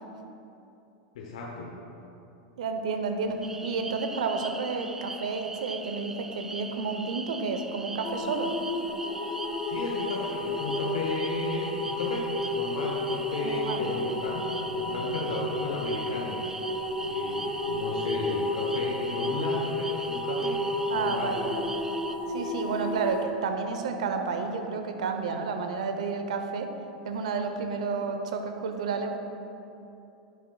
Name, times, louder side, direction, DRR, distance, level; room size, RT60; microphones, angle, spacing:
voice 1, 1.1-1.7 9.7-12.3 12.5-16.6 17.0-21.3, left 3 dB, 70° left, -2 dB, 1.0 m, -34 dB
voice 2, 2.6-8.6 13.4-13.9 20.9-21.7 22.3-26.7 27.0-29.2, right 4 dB, 75° right, 6 dB, 0.7 m, -31 dB
sound 1, 3.4-22.2, right 3 dB, 10° right, 0.3 m, -41 dB
sound 2, 8.0-23.2, left 2 dB, 30° left, 1.0 m, -32 dB
10.5 x 7.1 x 2.3 m, 2.8 s
hypercardioid pair, 100°, 4 cm